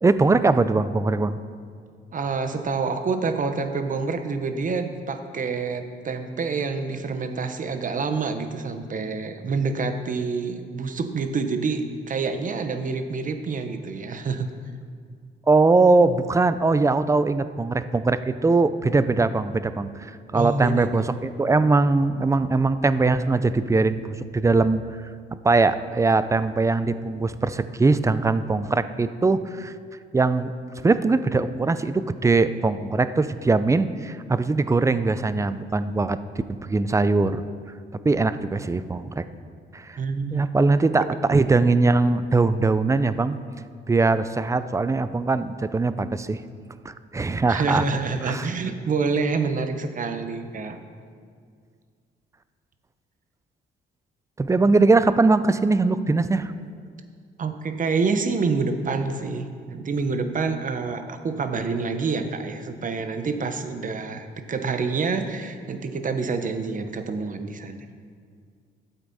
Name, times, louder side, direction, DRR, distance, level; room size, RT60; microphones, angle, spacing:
voice 1, 0.0-1.4 15.5-24.8 25.4-29.7 30.1-30.5 30.8-36.2 36.6-37.5 38.0-39.2 39.7-40.0 40.3-41.0 41.3-43.4 43.9-46.4 46.8-47.8 48.2-48.5 54.4-56.5, right 3 dB, 15° right, 13 dB, 0.4 m, -21 dB
voice 2, 2.1-14.5 20.3-21.0 40.0-40.5 47.5-50.8 57.4-67.8, right 4 dB, 40° right, 8 dB, 0.9 m, -27 dB
13.0 x 8.0 x 4.1 m, 2.1 s
cardioid pair, 90°, 20 cm